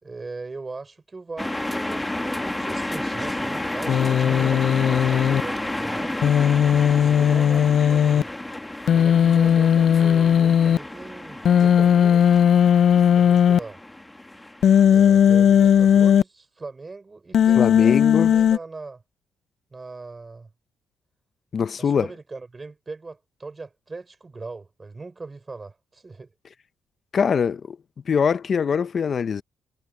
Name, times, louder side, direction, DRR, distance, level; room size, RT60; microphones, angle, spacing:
voice 1, 0.0-6.2 7.0-8.3 8.9-12.4 13.2-13.8 14.9-19.0 19.7-20.5 21.8-26.3, right 3 dB, 25° right, 5.7 m, -39 dB
sound 1, 1.4-14.8, left 1 dB, 10° left, 1.8 m, -31 dB
Human voice, 3.9-5.4 6.2-8.2 8.9-10.8 11.4-13.6 14.6-16.2 17.3-18.6, left 9 dB, 65° left, 0.3 m, -17 dB
voice 2, 17.6-18.3 21.5-22.1 27.1-27.8 28.1-29.4, left 6 dB, 45° left, 0.7 m, -22 dB
cardioid pair, 90°, 0 cm